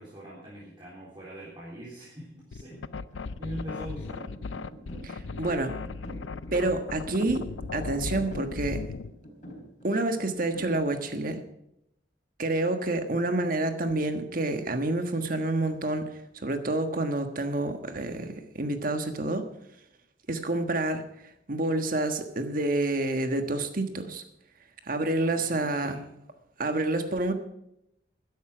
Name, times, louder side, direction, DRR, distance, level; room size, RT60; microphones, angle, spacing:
voice 1, 0.0-2.9 3.4-4.3 25.2-26.0, equal, 25° right, -7 dB, 3.6 m, -42 dB
sound 1, 2.5-9.1, left 4 dB, 85° left, 0.5 m, -37 dB
sound 2, 2.7-11.2, equal, 45° left, 4.0 m, -47 dB
voice 2, 5.0-5.8 6.5-7.4 7.7-8.8 9.8-11.4 12.4-16.1 16.3-19.5 20.3-21.0 21.5-24.2 24.9-25.9 26.6-27.3, right 2 dB, 50° right, 7 dB, 1.4 m, -28 dB
13.0 x 11.0 x 6.0 m, 0.81 s
head